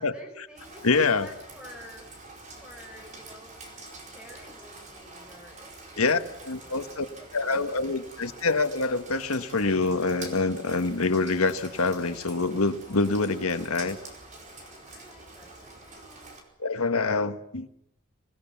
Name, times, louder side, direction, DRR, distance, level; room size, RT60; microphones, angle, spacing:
voice 1, 0.0-2.1 2.6-3.6 4.0-8.4 14.8-16.3, left 1 dB, 5° right, 1 dB, 5.0 m, -50 dB
Rain, 0.6-16.4, right 2 dB, 35° right, 4.7 m, -46 dB
voice 2, 0.8-1.3 6.0-6.2 6.4-7.0 7.3-14.0 16.6-17.7, left 3 dB, 90° left, 9 dB, 1.5 m, -25 dB
25.5 x 18.0 x 7.2 m, 0.77 s
head